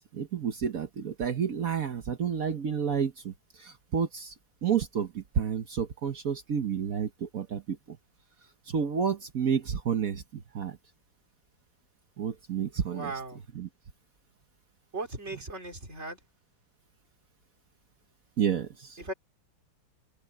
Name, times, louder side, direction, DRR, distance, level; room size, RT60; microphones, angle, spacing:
voice 1, 0.1-4.3 4.6-8.0 8.7-10.8 12.2-13.1 13.5-13.7 18.4-19.0, right 7 dB, 50° right, 1.3 m, -30 dB
voice 2, 12.9-13.4 14.9-16.2 19.0-19.1, right 2 dB, 35° right, 4.3 m, -37 dB
omnidirectional pair, 2.1 m